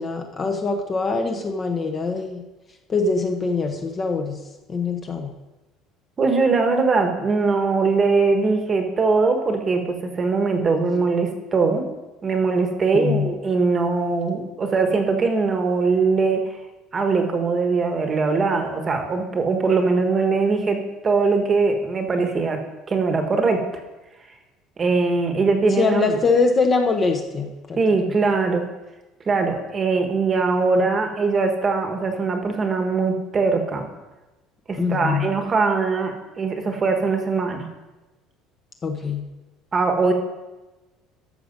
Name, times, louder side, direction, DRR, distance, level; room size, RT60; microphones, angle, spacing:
voice 1, 0.0-2.4 2.9-4.4 4.7-5.3 12.9-13.3 25.3-25.4 25.7-27.8 34.8-35.3 38.8-39.3, left 4 dB, 20° left, 4 dB, 0.8 m, -23 dB
voice 2, 6.2-11.9 12.2-16.4 16.9-22.6 22.9-23.6 24.8-26.2 27.8-28.7 29.3-33.9 34.7-37.7 39.7-40.1, right 4 dB, 20° right, 5 dB, 1.2 m, -21 dB
13.0 x 6.7 x 5.2 m, 1.1 s
cardioid pair, 175°, 0 cm